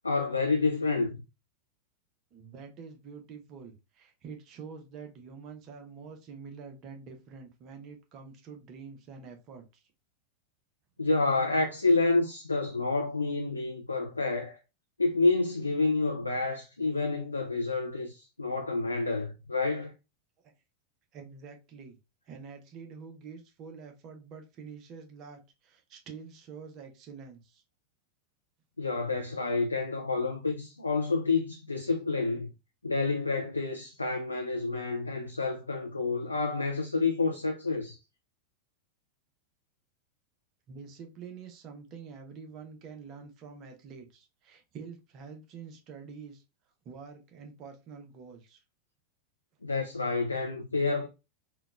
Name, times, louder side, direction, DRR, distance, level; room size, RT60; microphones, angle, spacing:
voice 1, 0.0-1.2 11.0-14.6 15.0-19.9 28.8-32.5 32.8-38.0 49.6-51.1, left 3 dB, 80° left, 0.3 m, -29 dB
voice 2, 2.3-9.8 21.1-22.0 22.3-27.6 40.7-46.4 46.8-48.6, right 5 dB, 35° right, 0.6 m, -47 dB
3.8 x 2.1 x 2.3 m
figure-of-eight pair, 90°, 0 cm